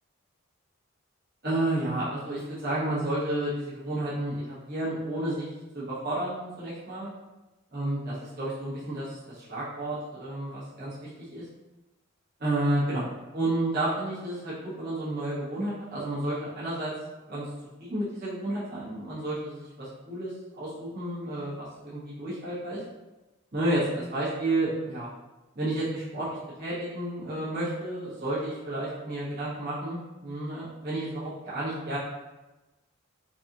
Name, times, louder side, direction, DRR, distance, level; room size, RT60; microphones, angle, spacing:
voice 1, 1.4-5.5 5.7-7.1 7.7-11.4 12.4-16.9 17.3-17.5 17.8-22.8 23.5-25.1 25.5-32.0, right 1 dB, 50° right, -10 dB, 1.2 m, -31 dB
4.1 x 2.8 x 2.6 m, 1.1 s
head